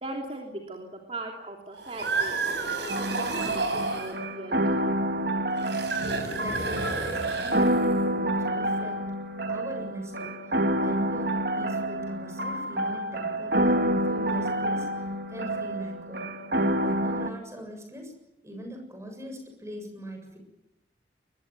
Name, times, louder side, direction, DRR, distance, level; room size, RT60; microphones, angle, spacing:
voice 1, 0.0-2.3 2.9-5.6, right 2 dB, 35° right, 1 dB, 3.3 m, -39 dB
sound 1, 1.7-4.2 5.6-8.0, right 3 dB, 85° right, 6.8 m, -31 dB
sound 2, 2.9-17.3, right 1 dB, 65° right, 1.9 m, -28 dB
voice 2, 6.4-9.1 9.5-10.3 10.8-14.9 15.3-16.3 16.5-18.1 18.4-20.4, equal, 15° right, 4 dB, 7.4 m, -41 dB
24.5 x 21.5 x 9.4 m, 0.88 s
head